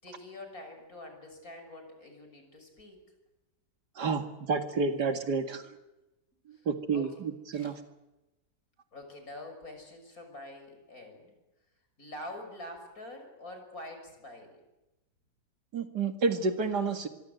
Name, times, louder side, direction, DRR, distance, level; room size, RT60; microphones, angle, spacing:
voice 1, 0.0-3.0 5.6-5.7 6.5-7.2 7.5-7.8 8.9-11.3 12.0-14.6, left 1 dB, 55° left, 5 dB, 6.6 m, -46 dB
voice 2, 4.0-5.6 6.7-7.8 15.7-17.1, right 4 dB, 75° right, 7 dB, 2.6 m, -30 dB
25.5 x 23.5 x 8.1 m, 1.0 s
omnidirectional pair, 1.8 m